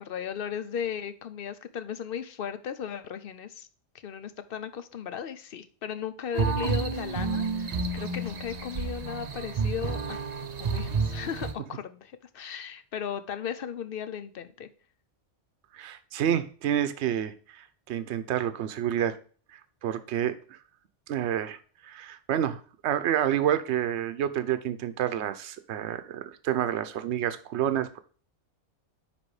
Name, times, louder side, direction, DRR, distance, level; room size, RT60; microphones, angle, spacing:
voice 1, 0.0-3.7 4.0-10.2 10.6-14.7, left 8 dB, 60° left, 11 dB, 0.7 m, -36 dB
sound 1, 6.3-11.5, right 4 dB, 45° right, 0.6 m, -30 dB
voice 2, 15.7-19.2 19.5-20.6 21.1-21.6 21.8-28.0, right 10 dB, 70° right, 12 dB, 0.9 m, -29 dB
9.7 x 3.4 x 4.8 m, 0.42 s
omnidirectional pair, 1.3 m